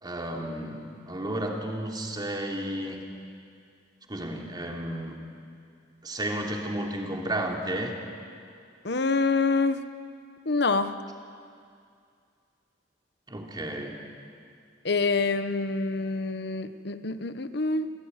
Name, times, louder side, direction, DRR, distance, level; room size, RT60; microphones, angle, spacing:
voice 1, 0.0-3.0 4.1-5.2 6.0-7.9 13.3-14.0, right 1 dB, 25° right, 0 dB, 3.3 m, -32 dB
voice 2, 8.8-9.8 10.4-11.0 14.8-17.9, left 3 dB, 65° left, 10 dB, 1.2 m, -26 dB
29.0 x 17.0 x 10.0 m, 2.3 s
head